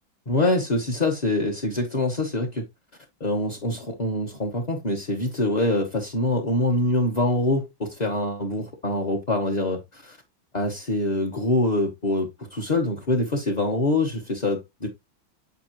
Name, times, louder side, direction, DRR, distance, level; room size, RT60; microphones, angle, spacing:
voice 1, 0.3-2.6 3.2-10.2 10.5-14.9, left 2 dB, 35° left, 0.7 m, -25 dB
8.3 x 4.8 x 3.0 m
omnidirectional pair, 2.3 m